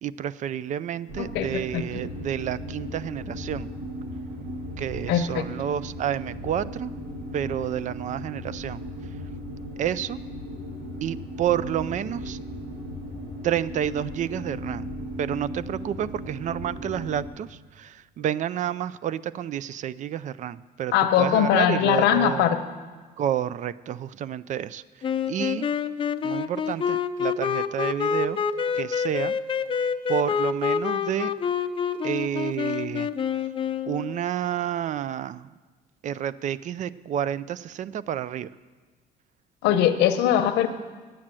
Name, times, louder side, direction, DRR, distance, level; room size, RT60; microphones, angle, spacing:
voice 1, 0.0-3.7 4.8-6.9 7.3-8.8 9.8-10.2 11.0-12.4 13.4-14.9 15.2-22.5 23.2-25.7 26.2-28.4 28.7-29.4 30.1-31.3 32.0-33.1 33.9-35.5 36.0-38.5, right 10 dB, 45° right, 18 dB, 0.4 m, -30 dB
sound 1, 1.1-17.3, equal, 75° right, 2.0 m, -36 dB
voice 2, 1.2-1.8 5.1-5.4 20.9-22.6 39.6-40.7, left 10 dB, 85° left, 8 dB, 0.9 m, -21 dB
sound 2, 25.0-34.2, left 6 dB, 30° left, 0.5 m, -27 dB
9.9 x 8.9 x 7.5 m, 1.4 s
cardioid pair, 110°, 17 cm